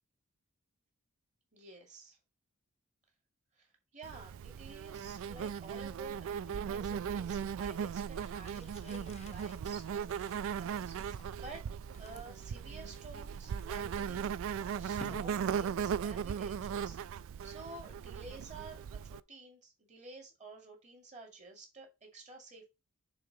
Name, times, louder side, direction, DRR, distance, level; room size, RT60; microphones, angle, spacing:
voice 1, 1.5-2.2 3.6-11.7 12.0-22.7, right 3 dB, 35° right, 1 dB, 2.4 m, -51 dB
Insect, 4.0-19.2, right 7 dB, 60° right, 0.3 m, -38 dB
sound 1, 8.2-15.9, left 3 dB, 30° left, 0.6 m, -57 dB
6.8 x 3.8 x 5.0 m, 0.24 s
head